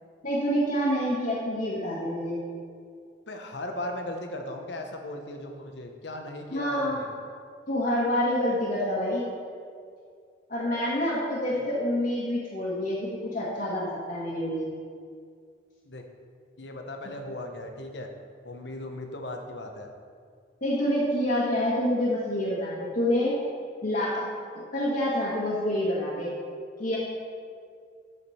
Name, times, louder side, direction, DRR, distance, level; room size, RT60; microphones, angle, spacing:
voice 1, 0.2-2.4 6.5-7.0 7.7-9.3 10.5-14.7 20.6-23.3 23.8-24.3 24.7-26.3 26.8-27.0, equal, 50° left, -8 dB, 1.6 m, -27 dB
voice 2, 3.3-7.1 11.5-11.6 15.8-16.0 16.6-18.1 18.4-19.9, left 1 dB, 70° left, 4 dB, 1.0 m, -37 dB
13.5 x 5.1 x 4.3 m, 2.2 s
head